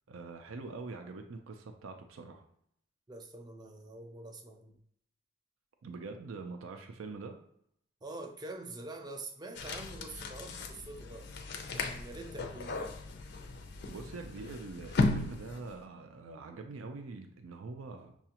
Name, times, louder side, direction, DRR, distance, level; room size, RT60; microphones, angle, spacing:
voice 1, 0.1-2.4 5.8-7.4 13.9-18.1, right 3 dB, 85° right, 5 dB, 0.4 m, -44 dB
voice 2, 3.1-4.8 8.0-11.3 11.7-12.8, right 2 dB, 20° right, 5 dB, 0.4 m, -45 dB
sound 1, 9.6-15.8, left 3 dB, 55° left, 0.4 m, -36 dB
5.7 x 2.3 x 2.8 m, 0.70 s
head